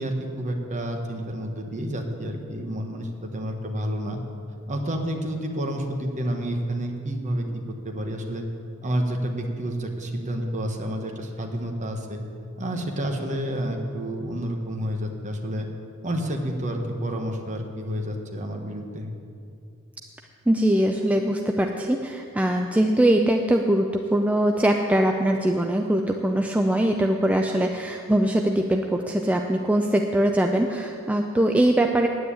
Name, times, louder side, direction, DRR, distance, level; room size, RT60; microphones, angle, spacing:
voice 1, 0.0-4.2 4.7-8.4 8.8-12.2 12.6-15.7 16.0-19.1, equal, 35° right, 3 dB, 1.3 m, -29 dB
voice 2, 20.5-32.1, right 1 dB, 5° right, 3 dB, 0.4 m, -22 dB
9.6 x 9.5 x 8.4 m, 2.5 s
head